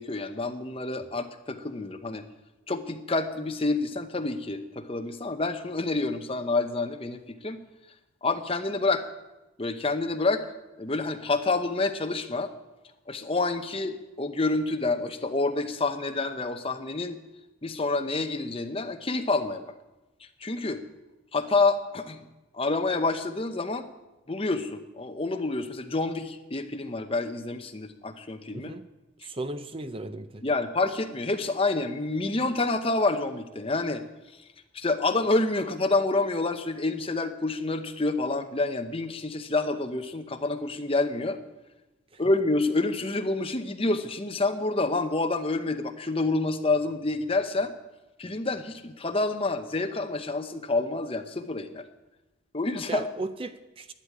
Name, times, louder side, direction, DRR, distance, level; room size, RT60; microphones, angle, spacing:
voice 1, 0.0-2.2 2.7-7.6 8.2-9.1 9.6-10.5 10.8-12.5 13.1-17.2 17.6-19.7 20.4-20.8 21.3-22.2 22.5-23.9 24.3-28.7 30.4-34.0 34.7-41.4 42.2-47.7 48.2-51.8 52.5-53.1, left 3 dB, 25° left, 7 dB, 0.8 m, -28 dB
voice 2, 28.5-28.9 29.2-30.4 42.1-42.2 52.9-53.9, right 2 dB, 25° right, 10 dB, 0.5 m, -36 dB
11.5 x 8.9 x 9.7 m, 1.1 s
head